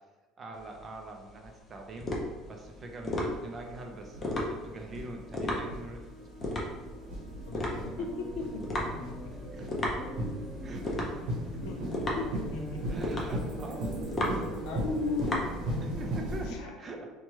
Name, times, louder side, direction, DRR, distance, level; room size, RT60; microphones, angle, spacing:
voice 1, 0.4-2.1 2.5-6.1 7.9-8.1 9.5-9.7 10.6-11.6 12.0-12.2 12.7-14.5 15.8-17.1, right 2 dB, 30° right, 3 dB, 0.4 m, -43 dB
sound 1, 0.6-16.1, left 1 dB, 25° left, 0.5 m, -35 dB
sound 2, 1.4-1.5 2.2-16.5, right 1 dB, 75° right, 0.8 m, -38 dB
voice 2, 7.5-8.8 9.2-9.3 11.6-11.8 12.2-13.0 13.4-13.6 14.6-16.0 16.4-16.7, left 3 dB, 80° left, 2 dB, 0.5 m, -36 dB
3.0 x 2.1 x 2.9 m, 1.2 s
cardioid pair, 145°, 0 cm